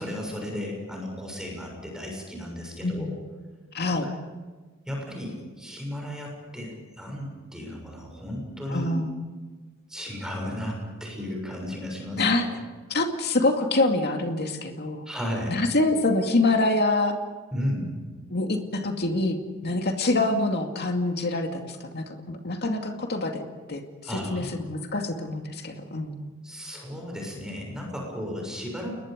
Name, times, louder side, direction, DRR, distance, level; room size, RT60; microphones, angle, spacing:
voice 1, 0.0-3.1 3.9-4.0 4.9-9.0 9.9-12.6 15.0-15.6 17.5-18.0 24.0-24.5 26.4-29.0, equal, 5° right, 0 dB, 6.8 m, -34 dB
voice 2, 3.7-4.1 8.7-9.1 12.2-12.5 12.9-15.1 15.5-17.2 18.3-19.4 19.6-23.4 23.7-23.8 24.1-26.2, left 2 dB, 50° left, 4 dB, 2.4 m, -25 dB
30.0 x 21.0 x 5.2 m, 1.4 s
head